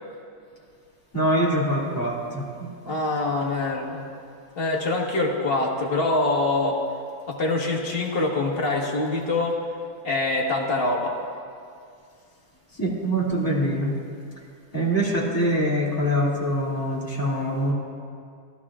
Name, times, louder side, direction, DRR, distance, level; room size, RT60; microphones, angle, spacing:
voice 1, 1.1-3.0 12.8-13.9 14.7-17.7, equal, 10° left, -7 dB, 2.4 m, -24 dB
voice 2, 2.9-4.0 4.6-6.8 7.3-9.6 10.0-11.1, left 2 dB, 35° left, -2 dB, 1.5 m, -24 dB
20.0 x 12.5 x 2.5 m, 2.3 s
omnidirectional pair, 2.0 m